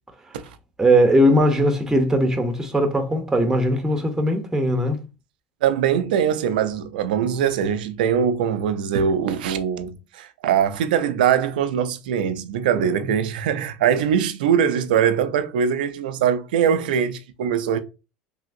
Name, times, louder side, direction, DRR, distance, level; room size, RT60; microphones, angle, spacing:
voice 1, 0.8-5.0 13.0-13.1, equal, 10° right, 0.7 m, -19 dB
voice 2, 5.6-17.8, right 8 dB, 85° right, 0.4 m, -22 dB
3.2 x 2.7 x 2.6 m
supercardioid pair, 95°, 5 cm